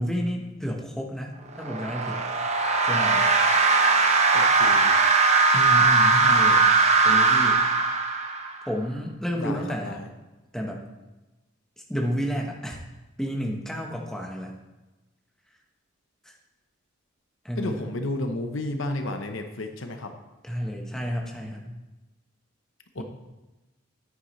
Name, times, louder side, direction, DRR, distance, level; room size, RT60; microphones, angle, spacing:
voice 1, 0.0-2.3 2.8-3.2 5.5-6.6 7.0-7.6 8.6-10.0 10.5-10.8 11.9-12.8 13.2-14.6 16.2-16.3 17.4-17.9 20.4-21.7 23.0-23.1, equal, ahead, 0 dB, 1.1 m, -31 dB
sound 1, 1.6-8.6, right 4 dB, 30° right, 0.9 m, -20 dB
voice 2, 4.3-5.0 9.4-10.1 17.6-20.1 22.9-23.0, left 2 dB, 65° left, 6 dB, 0.9 m, -32 dB
9.8 x 9.5 x 3.2 m, 1.1 s
head